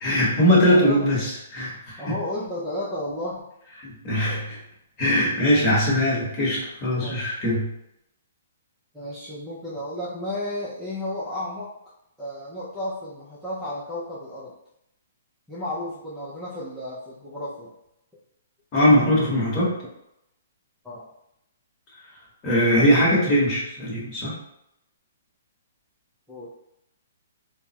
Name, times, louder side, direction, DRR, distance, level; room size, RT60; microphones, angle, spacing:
voice 1, 0.0-2.1 3.8-4.6 5.0-7.7 18.7-19.7 22.4-24.4, equal, 25° left, -6 dB, 1.1 m, -21 dB
voice 2, 0.7-1.0 2.0-3.5 7.0-7.3 8.9-11.7 12.2-14.5 15.5-17.7 20.8-21.0 26.3-26.5, left 1 dB, 5° right, -10 dB, 0.5 m, -33 dB
3.3 x 2.0 x 2.8 m, 0.82 s
hypercardioid pair, 155°, 0 cm